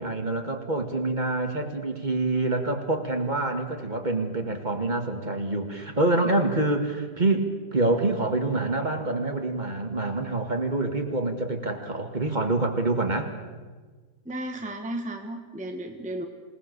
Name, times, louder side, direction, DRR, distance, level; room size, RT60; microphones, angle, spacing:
voice 1, 0.0-13.3, right 2 dB, 25° right, 4 dB, 2.0 m, -26 dB
voice 2, 14.2-16.2, right 1 dB, 5° right, 4 dB, 1.4 m, -34 dB
27.5 x 18.5 x 6.9 m, 1.4 s
omnidirectional pair, 1.8 m